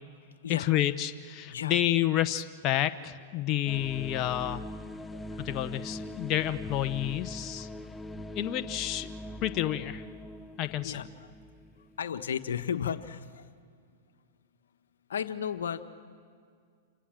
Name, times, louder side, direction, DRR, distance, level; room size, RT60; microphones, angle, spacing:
voice 1, 0.5-4.6 5.4-7.7 8.3-9.1 9.4-10.1 10.6-11.0, left 13 dB, 40° left, 10 dB, 1.0 m, -29 dB
sound 1, 3.7-12.4, left 1 dB, 10° left, 0.8 m, -42 dB
voice 2, 12.0-13.2 15.1-15.9, left 8 dB, 85° left, 10 dB, 1.2 m, -33 dB
28.5 x 27.0 x 7.7 m, 2.1 s
hypercardioid pair, 120°, 0 cm